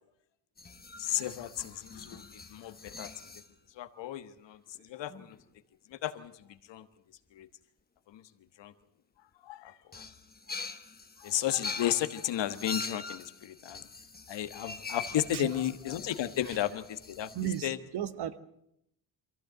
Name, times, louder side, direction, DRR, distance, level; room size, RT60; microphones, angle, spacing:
sound 1, 0.6-3.5 4.8-4.9 5.1-5.4 6.1-6.3 9.9-17.6, left 4 dB, 20° left, 1.3 m, -44 dB
voice 1, 1.0-3.1 3.8-5.4 5.9-6.9 7.3-7.5 8.1-8.2 8.6-8.7 9.4-10.0 11.2-13.8 14.3-17.8, left 12 dB, 65° left, 11 dB, 1.4 m, -34 dB
voice 2, 17.3-18.4, right 10 dB, 55° right, 13 dB, 1.3 m, -34 dB
23.5 x 15.0 x 8.0 m, 0.79 s
cardioid pair, 90°, 46 cm